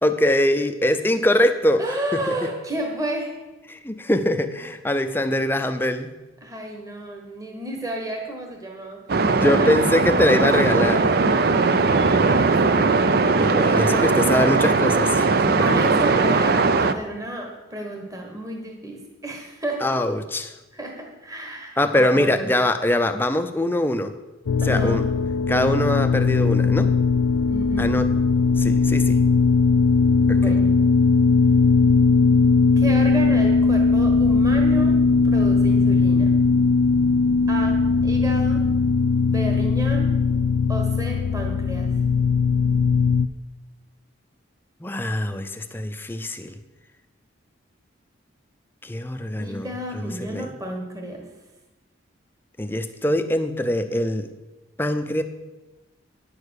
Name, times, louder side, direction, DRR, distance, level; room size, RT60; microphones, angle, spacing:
voice 1, 0.0-1.8 2.1-2.2 3.7-6.1 9.3-11.1 13.4-15.6 19.8-20.5 21.8-24.1 24.6-25.0 25.5-26.9 27.8-28.1 28.6-29.2 30.3-30.5 44.8-46.6 48.8-49.7 49.9-50.5 52.6-54.3 54.8-55.2, left 1 dB, 10° left, 8 dB, 0.5 m, -23 dB
voice 2, 1.8-3.4 6.4-9.0 9.4-9.7 11.5-13.2 13.6-14.2 15.6-19.8 20.7-22.6 24.6-25.0 27.5-27.9 30.4-30.7 32.8-35.0 35.2-36.4 37.5-38.6 39.2-40.1 40.7-41.9 49.4-51.2, right 1 dB, 15° right, 2 dB, 1.2 m, -32 dB
sound 1, 9.1-16.9, right 4 dB, 50° right, 0.5 m, -19 dB
sound 2, 24.5-43.3, left 4 dB, 85° left, 0.4 m, -19 dB
9.6 x 6.8 x 6.4 m, 1.1 s
head